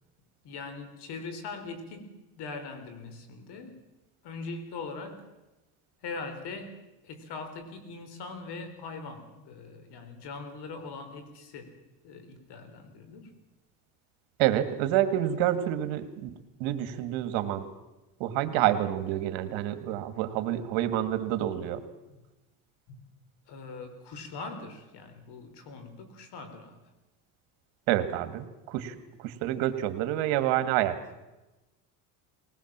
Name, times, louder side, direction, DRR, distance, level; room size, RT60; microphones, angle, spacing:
voice 1, 0.4-3.8 4.2-5.2 6.0-6.8 7.0-11.7 12.0-13.3 22.9-23.0 23.5-26.8, left 3 dB, 60° left, 9 dB, 4.0 m, -41 dB
voice 2, 14.4-16.3 16.6-17.7 18.2-21.8 27.9-31.0, right 12 dB, 75° right, 10 dB, 2.1 m, -28 dB
20.5 x 18.5 x 7.4 m, 1.0 s
cardioid pair, 120°, 46 cm